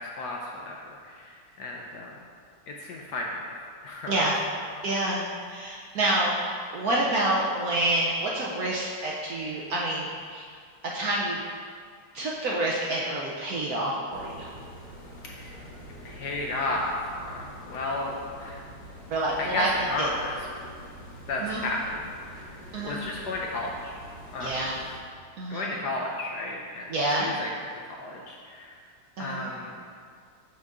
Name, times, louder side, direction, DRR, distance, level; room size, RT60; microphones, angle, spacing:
voice 1, 0.2-2.2 2.7-3.5 3.8-4.2 15.2-15.6 16.0-18.6 19.4-20.4 21.3-22.5 22.8-24.0 24.3-24.6 25.5-26.9 27.2-27.5 27.8-28.8 29.2-29.8, left 2 dB, 70° left, -1 dB, 1.0 m, -33 dB
voice 2, 4.1-4.4 4.8-10.4 10.9-11.4 12.1-14.5 19.1-19.7 20.0-20.1 21.4-21.6 22.7-23.0 24.4-24.8 25.4-25.7 26.9-27.3 29.2-29.5, right 1 dB, 65° right, -4 dB, 0.9 m, -28 dB
sound 1, 14.1-25.0, equal, 45° left, 1.4 m, -45 dB
6.5 x 6.5 x 3.5 m, 2.1 s
omnidirectional pair, 2.2 m